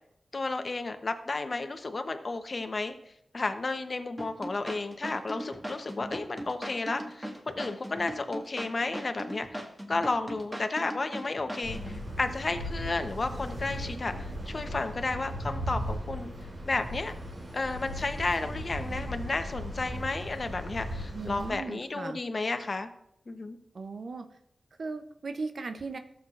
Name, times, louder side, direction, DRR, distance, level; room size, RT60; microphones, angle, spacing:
voice 1, 0.3-3.0 3.3-7.3 7.6-9.5 9.9-16.3 16.7-17.1 17.5-22.9 23.3-23.6, left 3 dB, 50° left, 8 dB, 0.8 m, -32 dB
sound 1, 4.2-12.0, equal, 10° right, 1.8 m, -39 dB
sound 2, 11.6-21.6, equal, 50° right, 2.6 m, -37 dB
voice 2, 21.1-22.2 23.7-24.3 24.8-26.0, right 4 dB, 70° right, 8 dB, 0.6 m, -37 dB
14.0 x 7.3 x 2.4 m, 0.75 s
cardioid pair, 65°, 0 cm